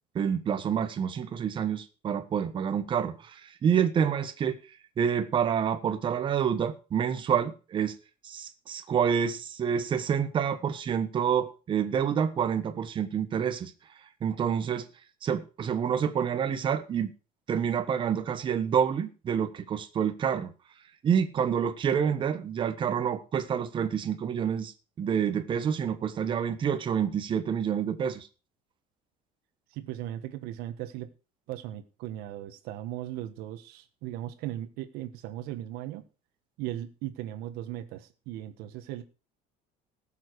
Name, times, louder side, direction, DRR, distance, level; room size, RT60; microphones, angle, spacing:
voice 1, 0.1-4.6 5.0-7.9 8.2-13.7 14.2-14.8 15.2-17.1 17.5-20.5 21.0-24.7 25.0-28.3, right 8 dB, 30° right, 1.3 m, -28 dB
voice 2, 29.7-31.1 31.5-36.0 36.6-39.0, right 13 dB, 70° right, 1.5 m, -37 dB
18.0 x 7.4 x 4.8 m
cardioid pair, 160°, 16 cm